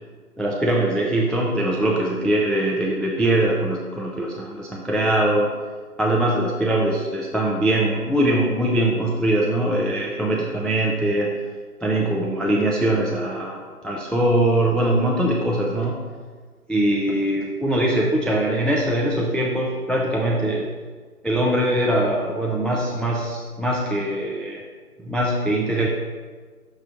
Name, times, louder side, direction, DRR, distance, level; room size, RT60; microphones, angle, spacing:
voice 1, 0.4-5.5 6.0-11.3 11.8-16.0 16.7-20.7 21.2-24.6 25.0-25.9, right 1 dB, ahead, -2 dB, 0.4 m, -22 dB
6.6 x 3.1 x 5.1 m, 1.5 s
figure-of-eight pair, 175°, 47 cm